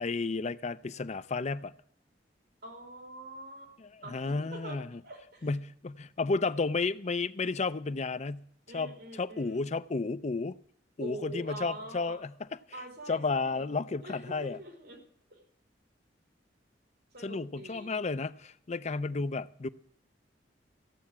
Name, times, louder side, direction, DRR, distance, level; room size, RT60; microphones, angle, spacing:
voice 1, 0.0-1.7 4.1-5.0 5.4-8.5 8.7-10.6 11.0-12.3 13.1-14.6 17.2-19.7, left 3 dB, 40° left, 0.5 m, -32 dB
voice 2, 2.6-3.7 4.0-4.8 5.0-5.5 8.7-9.7 11.0-12.3 12.7-13.7 14.0-15.0 15.3-15.4 17.1-18.0, right 1 dB, 60° right, 3.8 m, -44 dB
15.5 x 7.0 x 8.6 m
head